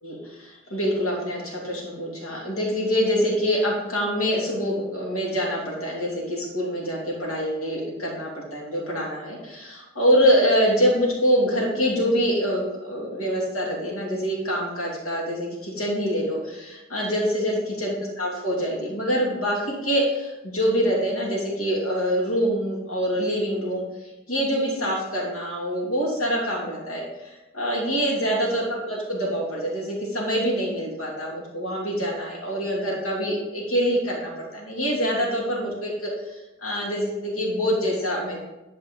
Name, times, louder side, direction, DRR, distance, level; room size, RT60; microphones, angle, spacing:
voice 1, 0.0-23.8 24.3-38.4, equal, 85° left, -3 dB, 2.8 m, -25 dB
11.0 x 5.2 x 3.9 m, 0.99 s
head